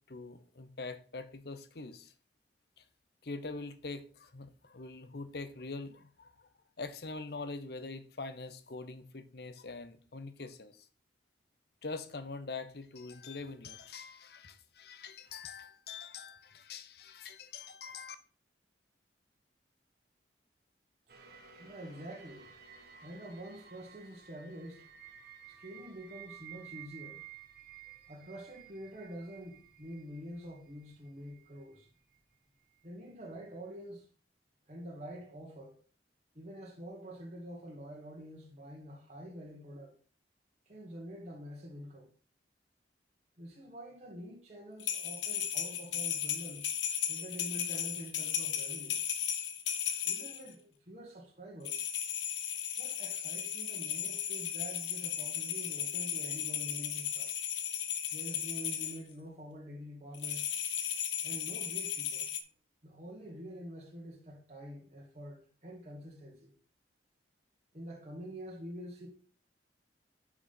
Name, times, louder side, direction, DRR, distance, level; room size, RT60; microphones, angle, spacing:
voice 1, 0.1-2.1 2.8-2.9 3.2-6.5 6.8-10.9 11.8-18.2, left 3 dB, 60° left, 0.8 m, -44 dB
sound 1, 21.1-32.2 32.7-32.8, right 9 dB, 55° right, 1.7 m, -54 dB
voice 2, 21.6-22.5 23.0-24.9 25.5-27.2 28.1-31.9 32.8-34.1 34.7-35.8 36.4-39.9 40.7-42.1 43.4-46.7 47.1-49.0 50.0-51.8 52.8-57.3 58.1-60.5 61.2-62.3 62.8-66.5 67.7-69.1, equal, 40° right, 1.7 m, -47 dB
sound 2, 44.8-50.5 51.6-59.0 60.1-62.4, left 9 dB, 90° left, 1.0 m, -35 dB
6.2 x 6.1 x 5.2 m
head